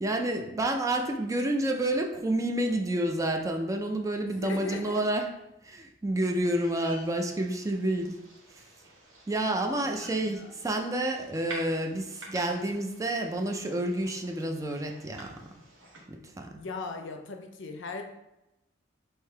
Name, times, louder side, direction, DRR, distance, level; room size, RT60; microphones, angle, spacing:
voice 1, 0.0-5.3 5.6-8.2 9.3-15.6 16.1-16.5, right 1 dB, 15° right, 3 dB, 0.4 m, -29 dB
voice 2, 4.4-5.0 9.6-10.5 16.6-18.0, left 3 dB, 70° left, 4 dB, 0.6 m, -38 dB
sound 1, 6.4-16.0, right 2 dB, 75° right, 1.1 m, -49 dB
3.6 x 2.7 x 4.4 m, 0.90 s
head